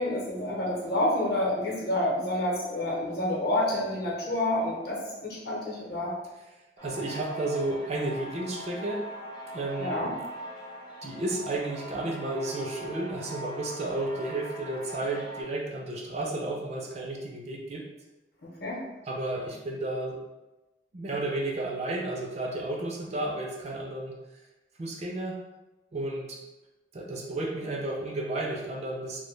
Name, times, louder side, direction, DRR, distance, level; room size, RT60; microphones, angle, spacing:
voice 1, 0.0-6.1 9.8-10.1 18.6-18.8, left 1 dB, 60° left, -3 dB, 0.7 m, -28 dB
sound 1, 6.8-15.4, equal, 25° left, 0.5 m, -41 dB
voice 2, 6.8-9.1 9.5-10.2 11.0-17.8 19.1-20.2 20.9-24.2 24.8-25.4 25.9-26.4 26.9-29.2, right 2 dB, 40° right, 0 dB, 0.4 m, -32 dB
2.1 x 2.1 x 3.1 m, 1.0 s
head